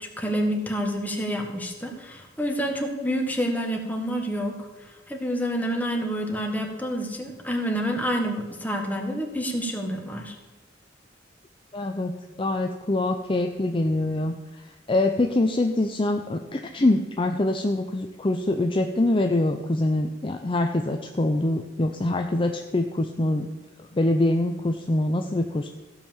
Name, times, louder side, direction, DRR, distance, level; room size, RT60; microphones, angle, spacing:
voice 1, 0.0-4.5 4.8-10.4, equal, 10° left, 2 dB, 1.5 m, -28 dB
voice 2, 11.7-12.1 12.4-14.4 14.6-23.5 23.8-25.7, left 2 dB, 30° left, 4 dB, 0.6 m, -24 dB
15.0 x 5.6 x 7.1 m, 1.2 s
head